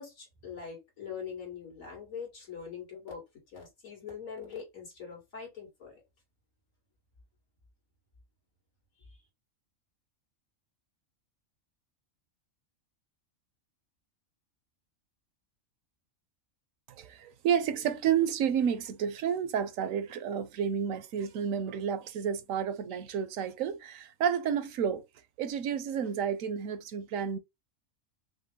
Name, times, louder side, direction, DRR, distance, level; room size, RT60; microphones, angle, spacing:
voice 1, 0.0-6.0 9.1-9.2, left 6 dB, 80° left, 2.5 m, -43 dB
voice 2, 17.0-25.0 25.4-27.4, right 8 dB, 80° right, 1.0 m, -30 dB
5.4 x 2.1 x 3.6 m
omnidirectional pair, 1.4 m